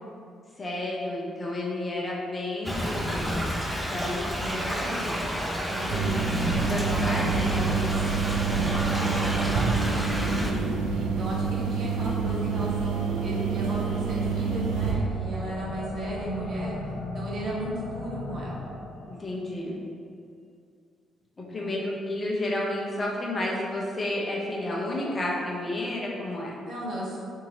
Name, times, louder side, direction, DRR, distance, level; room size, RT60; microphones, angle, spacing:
voice 1, 0.6-3.3 3.9-4.3 4.7-4.8 5.5-5.8 6.7-7.6 10.3-10.7 19.1-19.8 21.5-26.5, left 1 dB, 35° left, -3 dB, 0.7 m, -31 dB
Thunder / Rain, 2.6-10.5, equal, 5° right, 0.4 m, -30 dB
voice 2, 4.4-8.1 8.4-9.9 10.9-16.8 17.1-18.7 21.5-21.8 26.7-27.2, right 1 dB, 55° right, -5 dB, 0.7 m, -36 dB
sound 1, 5.9-14.9, right 5 dB, 80° right, 0.3 m, -27 dB
sound 2, 13.7-19.1, left 1 dB, 75° left, 0.5 m, -37 dB
2.8 x 2.7 x 2.7 m, 2.3 s
hypercardioid pair, 45°, 0 cm